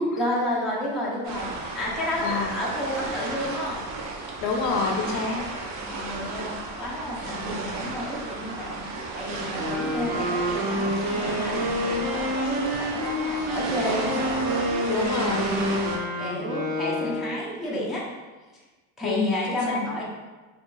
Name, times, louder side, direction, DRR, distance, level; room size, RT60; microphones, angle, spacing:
voice 1, 0.2-1.5 1.7-3.8 5.8-15.7 16.2-18.1 19.0-20.0, left 1 dB, ahead, -6 dB, 0.4 m, -31 dB
sound 1, 1.2-16.0, right 3 dB, 55° right, 0.6 m, -33 dB
voice 2, 2.2-2.5 4.4-5.4 14.9-15.5 19.0-19.9, left 4 dB, 50° left, 2 dB, 0.5 m, -27 dB
Wind instrument woodwind instrument, 9.4-17.4, equal, 75° right, 1.1 m, -28 dB
2.7 x 2.3 x 3.8 m, 1.3 s
cardioid pair, 150°, 37 cm